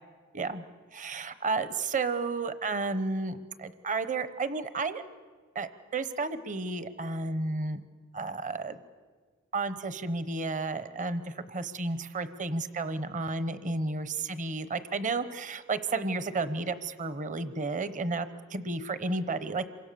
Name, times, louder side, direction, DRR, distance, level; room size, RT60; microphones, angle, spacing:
voice 1, 0.3-0.6 0.9-5.0 5.5-7.8 8.1-8.8 9.5-19.7, right 3 dB, 35° right, 12 dB, 1.0 m, -32 dB
27.5 x 24.5 x 6.9 m, 1.5 s
head